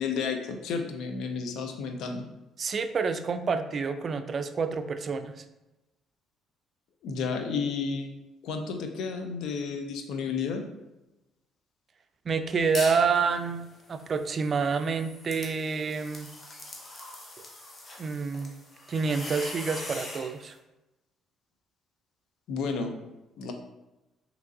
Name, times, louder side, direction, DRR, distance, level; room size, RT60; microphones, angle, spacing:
voice 1, 0.0-2.3 7.0-8.1 8.4-10.6 22.5-23.0 23.4-23.5, left 5 dB, 75° left, 5 dB, 0.4 m, -31 dB
voice 2, 2.6-5.4 12.3-16.3 18.0-18.5 18.9-20.6, right 5 dB, 45° right, 10 dB, 0.3 m, -28 dB
sound 1, 12.6-13.1 13.5-20.3, left 2 dB, 35° left, 0.8 m, -41 dB
3.4 x 2.9 x 2.6 m, 0.99 s
supercardioid pair, 70°, 0 cm